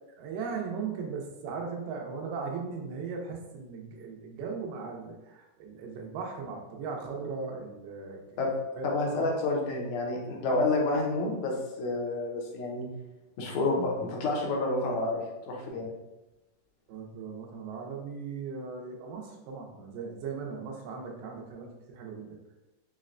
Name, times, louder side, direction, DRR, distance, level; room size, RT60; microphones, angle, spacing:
voice 1, 0.2-8.4 8.8-9.3 16.9-22.4, right 5 dB, 85° right, 1 dB, 2.3 m, -38 dB
voice 2, 8.8-12.9 13.4-15.9, left 2 dB, 75° left, 0 dB, 2.0 m, -29 dB
5.8 x 2.1 x 2.4 m, 1.0 s
omnidirectional pair, 3.7 m